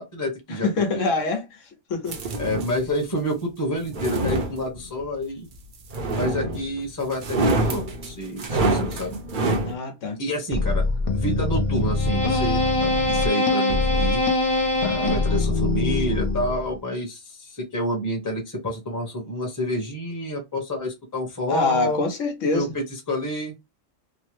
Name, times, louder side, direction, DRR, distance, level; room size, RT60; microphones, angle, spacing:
voice 1, 0.0-1.1 2.4-5.5 6.2-9.2 10.2-10.8 11.1-14.2 15.0-22.0 22.4-23.5, equal, 15° left, 0.9 m, -28 dB
voice 2, 0.6-1.5 1.9-2.2 9.6-10.2 21.5-22.7, left 3 dB, 80° left, 1.2 m, -24 dB
sound 1, 2.1-2.8 3.7-5.0 5.9-6.8 7.1-9.7, right 2 dB, 50° right, 0.7 m, -25 dB
sound 2, 10.5-16.8, left 2 dB, 40° left, 0.5 m, -22 dB
3.1 x 2.1 x 3.0 m
omnidirectional pair, 1.3 m